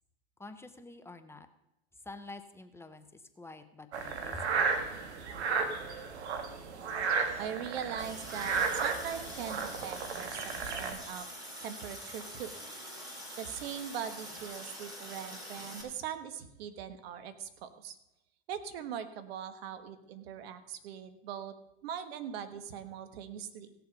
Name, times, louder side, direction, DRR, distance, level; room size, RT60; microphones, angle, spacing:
voice 1, 0.4-1.5 2.0-4.5, left 2 dB, 10° left, 8 dB, 0.6 m, -48 dB
sound 1, 3.9-10.9, right 5 dB, 85° right, 1.6 m, -34 dB
voice 2, 7.4-11.3 11.6-12.5 13.4-18.0 18.5-21.5 21.8-23.7, right 8 dB, 65° right, 11 dB, 1.4 m, -41 dB
Water tap faucet, 8.0-15.8, equal, 10° right, 3.7 m, -45 dB
16.5 x 6.9 x 5.3 m, 0.88 s
hypercardioid pair, 120°, 33 cm